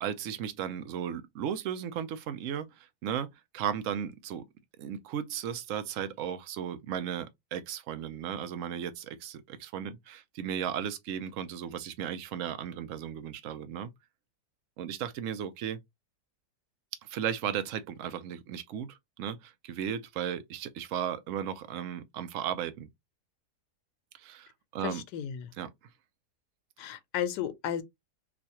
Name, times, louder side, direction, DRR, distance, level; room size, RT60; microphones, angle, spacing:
voice 1, 0.0-4.5 4.8-13.9 14.8-15.8 17.0-22.9 24.1-25.0 25.6-25.7, right 9 dB, 65° right, 0.8 m, -35 dB
voice 2, 24.8-25.5 26.8-27.8, left 9 dB, 85° left, 1.2 m, -34 dB
4.0 x 2.5 x 2.8 m
omnidirectional pair, 1.7 m